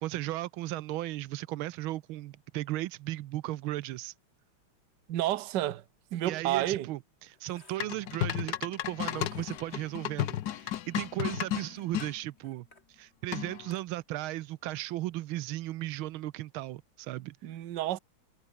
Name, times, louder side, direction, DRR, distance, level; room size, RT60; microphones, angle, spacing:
voice 1, 0.0-4.1 6.2-12.7 13.0-17.4, right 16 dB, 80° right, 1.5 m, -36 dB
voice 2, 5.1-5.8 6.1-6.9 17.4-18.0, right 14 dB, 60° right, 1.4 m, -30 dB
sound 1, 7.0-16.1, left 2 dB, 30° left, 5.7 m, -63 dB
sound 2, 7.8-12.1 13.3-13.7, left 12 dB, 60° left, 1.1 m, -33 dB
omnidirectional pair, 2.4 m